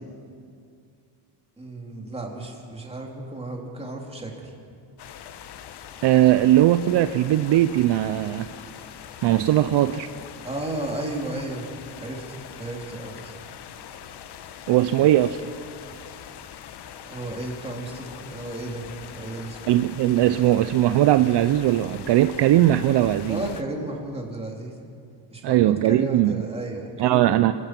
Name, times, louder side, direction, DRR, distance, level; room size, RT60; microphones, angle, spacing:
voice 1, 1.6-4.3 10.4-11.7 12.0-13.3 15.0-15.1 17.0-19.8 23.3-24.7 25.3-27.4, right 2 dB, 10° right, 0 dB, 3.2 m, -33 dB
sound 1, 5.0-23.6, left 9 dB, 55° left, 1.2 m, -42 dB
voice 2, 6.0-8.5 9.2-10.1 14.7-15.4 19.7-23.4 25.4-26.5 27.0-27.5, right 13 dB, 60° right, 12 dB, 0.7 m, -19 dB
27.0 x 16.0 x 6.0 m, 2.4 s
cardioid pair, 125°, 48 cm